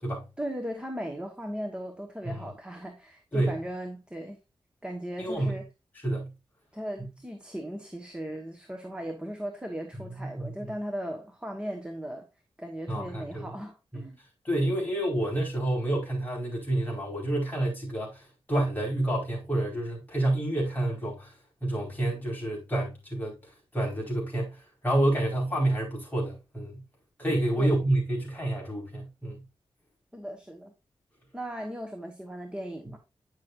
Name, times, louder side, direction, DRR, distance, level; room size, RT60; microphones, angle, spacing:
voice 1, 0.4-4.4 4.8-5.6 6.7-12.3 12.6-14.2 27.6-27.8 30.1-30.7 31.3-33.0, equal, 10° right, 1.4 m, -37 dB
voice 2, 5.2-5.6 6.0-6.3 10.1-10.7 12.9-13.4 13.9-14.1 14.4-21.3 21.6-26.8 27.2-29.4, right 1 dB, 15° left, 4.7 m, -29 dB
9.5 x 6.5 x 2.6 m
wide cardioid pair, 105°, 10 cm